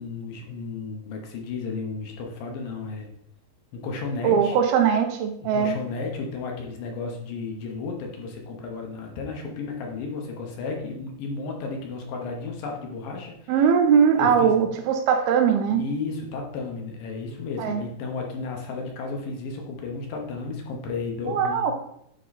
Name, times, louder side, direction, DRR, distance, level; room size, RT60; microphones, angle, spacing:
voice 1, 0.0-3.1 3.7-4.6 5.4-13.6 14.2-14.6 15.7-21.7, left 4 dB, 70° left, 1 dB, 2.6 m, -33 dB
voice 2, 4.2-5.8 13.5-15.8 17.6-17.8 21.3-21.7, right 7 dB, 85° right, 5 dB, 2.6 m, -20 dB
9.7 x 3.7 x 4.1 m, 0.73 s
omnidirectional pair, 4.4 m